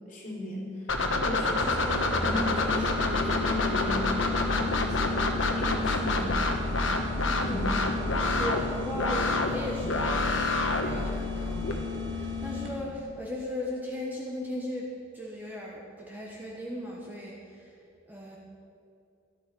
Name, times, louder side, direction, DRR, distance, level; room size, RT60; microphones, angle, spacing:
voice 1, 0.1-0.6 1.1-5.3 5.5-6.3 6.7-6.9 7.4-7.8, left 1 dB, 40° left, -4 dB, 3.7 m, -36 dB
sound 1, 0.9-11.7, left 2 dB, 70° left, 1.3 m, -28 dB
sound 2, 1.6-13.0, left 3 dB, 70° right, 2.0 m, -35 dB
voice 2, 7.2-7.7 8.4-10.2 10.5-14.9 15.1-17.3 18.1-18.4, left 1 dB, 10° right, -3 dB, 1.1 m, -37 dB
13.0 x 11.5 x 5.4 m, 2.6 s
head